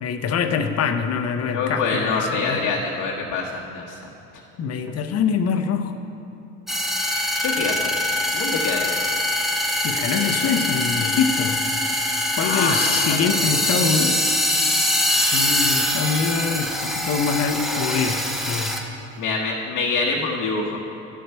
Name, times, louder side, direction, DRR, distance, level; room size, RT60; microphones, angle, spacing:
voice 1, 0.0-2.6 4.6-5.9 8.7-8.8 9.8-11.6 12.4-14.2 15.3-18.7, left 6 dB, 45° left, 7 dB, 0.8 m, -24 dB
voice 2, 1.5-3.4 3.7-3.8 7.4-7.9 8.3-8.9 12.4-13.3 19.2-20.8, left 4 dB, 65° left, -2 dB, 1.1 m, -25 dB
sound 1, 6.7-18.8, left 1 dB, ahead, 1.0 m, -23 dB
11.0 x 6.9 x 4.4 m, 2.9 s
supercardioid pair, 80°, 34 cm